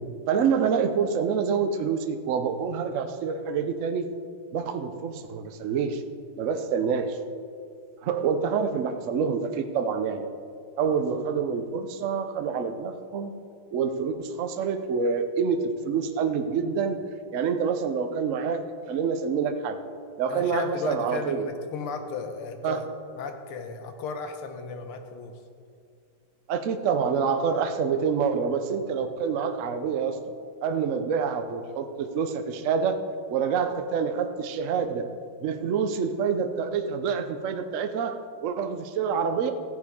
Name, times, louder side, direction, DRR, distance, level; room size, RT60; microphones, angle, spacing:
voice 1, 0.3-4.1 4.5-6.0 6.4-7.2 8.0-10.3 10.8-13.3 13.7-17.0 17.3-19.8 20.2-21.5 22.6-22.9 26.5-30.2 30.6-33.0 33.3-35.1 35.4-39.5, right 6 dB, 85° right, 7 dB, 0.6 m, -27 dB
voice 2, 20.3-22.9 23.1-25.4, left 4 dB, 85° left, 6 dB, 1.9 m, -35 dB
15.5 x 9.5 x 3.6 m, 2.4 s
omnidirectional pair, 2.3 m